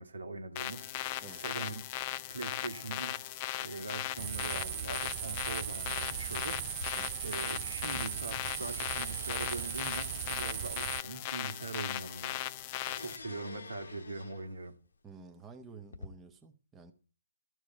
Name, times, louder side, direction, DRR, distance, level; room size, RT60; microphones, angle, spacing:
voice 1, 0.0-1.8 2.3-3.3 3.6-6.9 7.2-14.7, right 3 dB, 80° right, 2.1 m, -42 dB
sound 1, 0.5-13.2, left 14 dB, 30° left, 0.5 m, -38 dB
sound 2, 4.2-11.0, right 14 dB, 35° right, 0.5 m, -38 dB
sound 3, 6.7-7.6 7.9-14.7 15.5-16.1, left 4 dB, 70° left, 1.1 m, -51 dB
voice 2, 15.0-16.9, right 4 dB, 10° right, 1.0 m, -51 dB
13.0 x 4.8 x 8.7 m
figure-of-eight pair, 140°, 0 cm